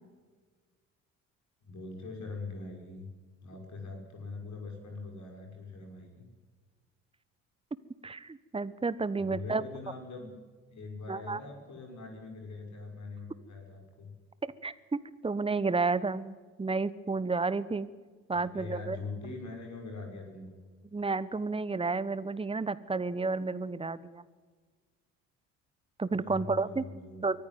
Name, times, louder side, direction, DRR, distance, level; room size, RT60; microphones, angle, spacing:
voice 1, 1.6-3.1 3.4-6.3 9.2-10.3 10.7-14.1 18.3-20.6 26.1-27.3, left 3 dB, 45° left, 2 dB, 6.4 m, -42 dB
voice 2, 8.0-9.6 11.1-11.4 14.4-17.9 18.3-19.0 20.9-24.2 26.0-26.8 27.2-27.4, right 4 dB, 15° right, 17 dB, 1.2 m, -31 dB
24.0 x 15.5 x 9.5 m, 1.4 s
figure-of-eight pair, 55°, 39 cm